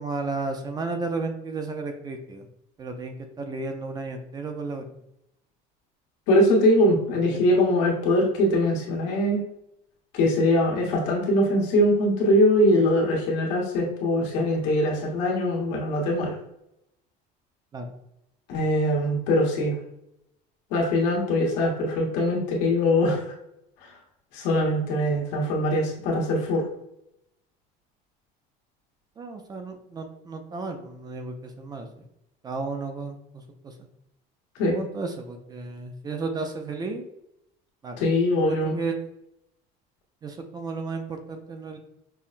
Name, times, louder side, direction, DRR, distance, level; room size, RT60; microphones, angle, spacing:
voice 1, 0.0-2.5 2.8-4.8 7.3-7.4 17.7-17.9 29.2-32.0 32.4-33.7 34.7-37.0 37.8-38.0 38.4-38.9 40.2-41.8, right 3 dB, 20° right, 5 dB, 0.4 m, -33 dB
voice 2, 6.3-9.4 10.1-16.3 18.5-19.8 20.7-23.2 24.3-26.7 34.6-34.8 38.0-38.7, left 1 dB, 80° left, -2 dB, 1.3 m, -22 dB
5.5 x 2.1 x 2.5 m, 0.80 s
cardioid pair, 145°, 19 cm